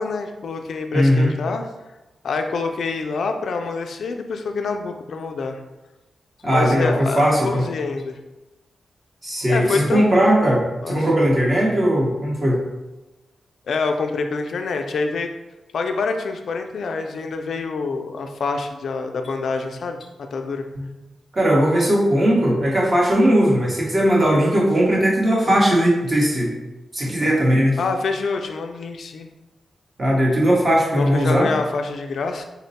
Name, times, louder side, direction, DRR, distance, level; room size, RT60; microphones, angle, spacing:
voice 1, 0.0-1.7 2.2-5.6 6.4-8.2 9.5-10.3 10.8-11.1 13.7-15.3 15.7-20.7 27.8-29.3 30.9-32.4, left 4 dB, 60° left, 5 dB, 0.3 m, -26 dB
voice 2, 0.9-1.3 6.4-7.6 9.2-12.6 20.8-20.9 21.3-26.5 26.9-27.8 30.0-31.5, equal, 30° right, -3 dB, 0.8 m, -18 dB
4.0 x 2.1 x 4.0 m, 1.0 s
wide cardioid pair, 175°, 0 cm